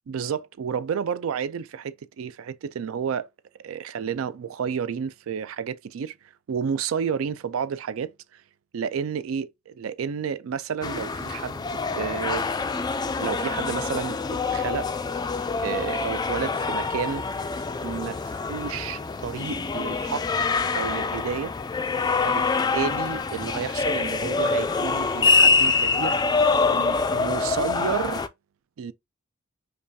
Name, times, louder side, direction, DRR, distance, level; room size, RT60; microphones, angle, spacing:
voice 1, 0.1-3.3 3.6-6.1 6.5-8.4 8.7-12.5 13.2-14.9 15.6-17.2 17.8-20.3 20.7-21.5 22.2-26.2 26.7-28.2 28.8-28.9, right 7 dB, 75° right, 0.4 m, -31 dB
sound 1, 10.8-28.3, left 4 dB, 20° left, 0.3 m, -25 dB
5.2 x 2.3 x 2.7 m
head